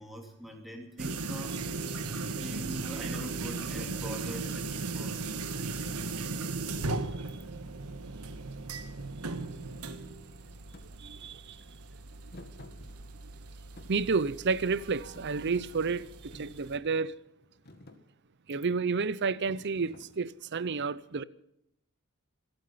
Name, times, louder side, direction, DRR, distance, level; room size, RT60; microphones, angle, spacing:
voice 1, 0.0-1.6 2.4-5.2, equal, ahead, 2.9 m, -43 dB
sound 1, 1.0-16.8, right 3 dB, 85° right, 1.4 m, -37 dB
Thump thud, 10.7-10.9 12.3-13.4 13.8-14.8 15.2-16.6 17.2-17.4 17.7-18.0 19.5-20.5, left 1 dB, 45° left, 1.8 m, -52 dB
voice 2, 11.0-11.6 13.9-17.1 18.5-21.2, right 4 dB, 50° right, 0.6 m, -30 dB
27.0 x 9.1 x 5.7 m
head